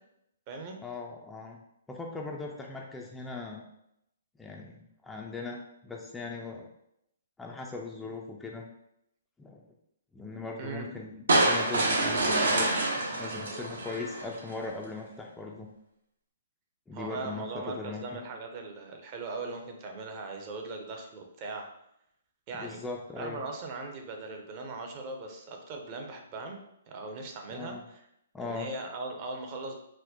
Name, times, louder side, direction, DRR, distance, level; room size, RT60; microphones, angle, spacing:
voice 1, 0.8-1.6 1.9-3.6 4.4-6.7 7.4-8.6 9.4-9.6 10.1-15.7 16.9-18.2 22.5-23.4 27.5-27.8 28.3-28.7, left 3 dB, 5° left, -1 dB, 0.3 m, -39 dB
sound 1, 11.3-14.5, right 2 dB, 80° right, 0.7 m, -26 dB
voice 2, 16.9-21.7 22.5-22.8 23.2-26.6 26.9-28.0 28.4-29.8, right 3 dB, 35° right, 3 dB, 0.6 m, -39 dB
4.1 x 2.0 x 2.8 m, 0.78 s
hypercardioid pair, 140°, 0 cm